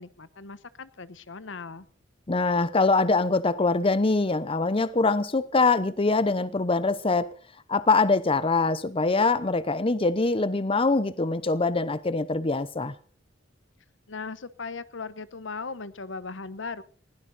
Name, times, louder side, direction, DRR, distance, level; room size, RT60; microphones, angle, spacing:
voice 1, 0.0-1.9 14.1-16.8, left 4 dB, 75° left, 1.0 m, -38 dB
voice 2, 2.3-7.3 7.7-12.9, left 3 dB, 30° left, 0.8 m, -23 dB
20.5 x 16.5 x 4.1 m
head